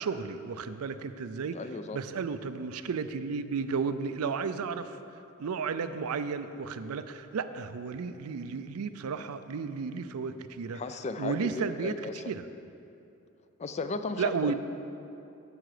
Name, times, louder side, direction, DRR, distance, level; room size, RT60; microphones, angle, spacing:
voice 1, 0.0-1.6 1.9-5.0 5.4-10.8 11.2-11.9 12.2-12.4 14.2-14.5, right 5 dB, 80° right, 11 dB, 0.4 m, -33 dB
voice 2, 1.5-2.0 10.7-12.3 13.6-14.5, left 3 dB, 30° left, 9 dB, 0.3 m, -35 dB
14.0 x 5.0 x 4.9 m, 2.8 s
head